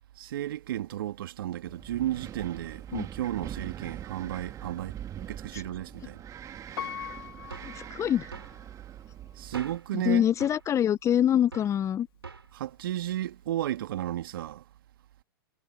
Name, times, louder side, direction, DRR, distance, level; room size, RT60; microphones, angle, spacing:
voice 1, 0.2-6.2 9.4-10.2 12.5-14.6, right 12 dB, 65° right, 2.4 m, -33 dB
Wind, 1.7-9.8, right 10 dB, 25° right, 1.9 m, -43 dB
Piano, 6.8-8.7 9.3-9.4, left 9 dB, 65° left, 2.6 m, -41 dB
sound 1, 7.5-7.8 8.3-8.6 9.5-9.9 10.4-10.7 11.5-11.8 12.2-12.5, right 5 dB, 85° right, 4.1 m, -43 dB
voice 2, 7.6-8.3 9.9-12.1, left 10 dB, 25° left, 0.8 m, -25 dB
hypercardioid pair, 105°, 13 cm